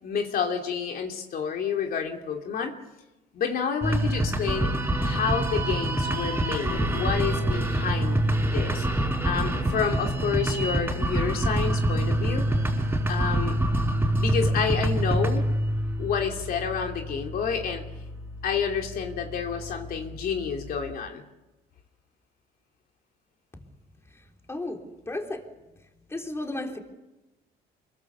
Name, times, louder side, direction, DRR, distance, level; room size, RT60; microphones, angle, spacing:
voice 1, 0.0-2.8 3.3-4.7 5.0-8.8 9.2-12.4 13.1-13.6 14.2-15.4 16.0-17.8 18.4-21.2, left 6 dB, 60° left, 2.8 m, -29 dB
sound 1, 3.8-20.9, right 1 dB, 10° right, 4.9 m, -27 dB
voice 2, 25.1-25.4 26.1-26.8, left 2 dB, 15° left, 3.7 m, -32 dB
26.0 x 22.5 x 6.9 m
cardioid pair, 110°, 17 cm